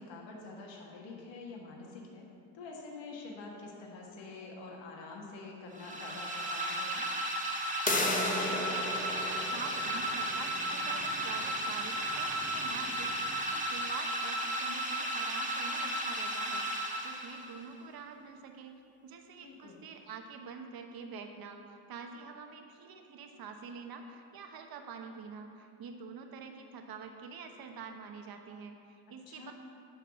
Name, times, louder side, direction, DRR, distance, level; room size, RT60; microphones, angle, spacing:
voice 1, 0.0-2.3 2.5-7.0 19.4-19.8 29.3-29.5, left 3 dB, 75° left, -1 dB, 1.7 m, -46 dB
sound 1, 5.7-17.6, right 1 dB, 15° right, 1.3 m, -34 dB
sound 2, 7.9-13.5, left 2 dB, 20° left, 1.0 m, -37 dB
voice 2, 7.9-29.5, right 5 dB, 55° right, 4 dB, 1.2 m, -47 dB
11.5 x 4.0 x 7.0 m, 2.5 s
cardioid pair, 100°, 44 cm